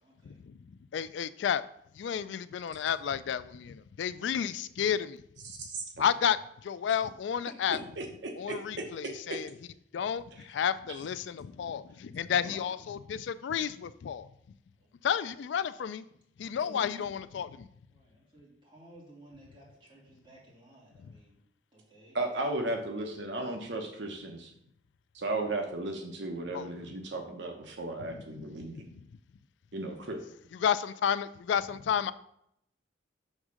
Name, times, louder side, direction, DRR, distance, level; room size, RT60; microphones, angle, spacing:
voice 1, 0.0-0.4 12.4-12.7 14.8-14.9 16.5-16.9 17.9-21.4 21.7-22.2, right 1 dB, 25° right, -5 dB, 2.7 m, -54 dB
voice 2, 0.9-1.6 2.0-5.2 6.0-6.4 6.6-7.8 8.4-9.5 9.9-14.3 15.0-16.0 16.4-17.7 26.5-26.7 28.1-28.4 30.6-32.1, left 8 dB, 65° left, 15 dB, 0.3 m, -31 dB
voice 3, 5.4-5.8 8.0-8.6 16.7-17.0 22.1-24.5 25.1-28.9 29.7-30.2, right 2 dB, 65° right, 3 dB, 1.0 m, -35 dB
6.5 x 3.6 x 6.2 m, 0.74 s
head